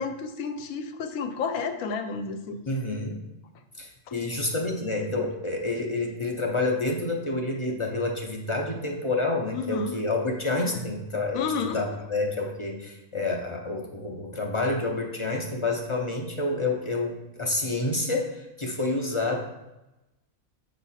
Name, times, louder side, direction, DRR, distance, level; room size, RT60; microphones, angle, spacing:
voice 1, 0.0-2.6 9.5-9.9 11.3-11.8, left 5 dB, 80° left, 8 dB, 1.1 m, -31 dB
voice 2, 2.7-3.2 3.8-19.4, left 2 dB, 40° left, 1 dB, 0.4 m, -28 dB
7.1 x 3.0 x 5.6 m, 0.97 s
omnidirectional pair, 1.4 m